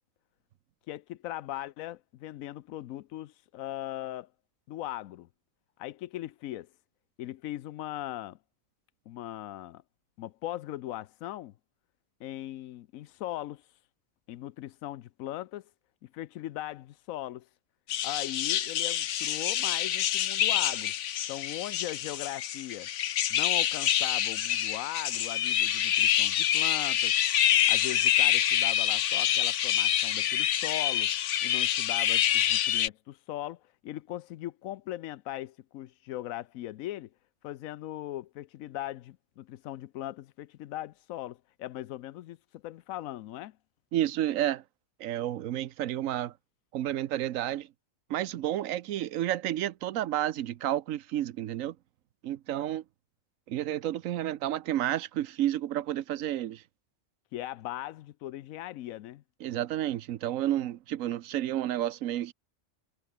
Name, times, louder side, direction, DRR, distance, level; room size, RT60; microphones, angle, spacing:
voice 1, 0.9-4.3 4.7-5.3 5.8-6.7 7.2-8.4 9.1-9.8 10.2-11.5 12.2-13.7 14.3-15.7 16.0-17.5 18.0-20.9 21.3-22.9 23.3-27.1 27.7-31.1 31.4-37.1 37.4-43.6 57.3-59.2, left 14 dB, 90° left, 1.0 m, -39 dB
sound 1, 17.9-32.9, left 11 dB, 65° left, 1.0 m, -27 dB
voice 2, 43.9-44.6 45.0-46.3 46.7-47.7 48.1-51.8 52.2-52.8 53.5-56.6 59.4-62.3, right 12 dB, 80° right, 1.1 m, -31 dB
omnidirectional pair, 1.4 m